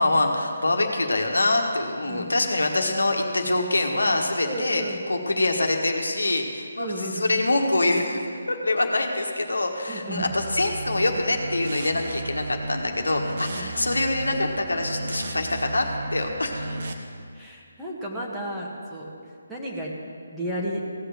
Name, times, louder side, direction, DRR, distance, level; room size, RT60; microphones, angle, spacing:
voice 1, 0.0-8.2 8.5-15.8 16.1-16.8, left 2 dB, 75° left, 2 dB, 1.4 m, -25 dB
voice 2, 4.4-5.0 6.8-7.3 9.9-10.3 13.5-13.7 17.3-19.1 19.5-20.0 20.3-20.8, right 1 dB, 5° right, -6 dB, 1.6 m, -33 dB
sound 1, 10.1-16.9, right 2 dB, 50° right, 1.1 m, -34 dB
16.0 x 6.6 x 7.6 m, 2.2 s
figure-of-eight pair, 145°, 0 cm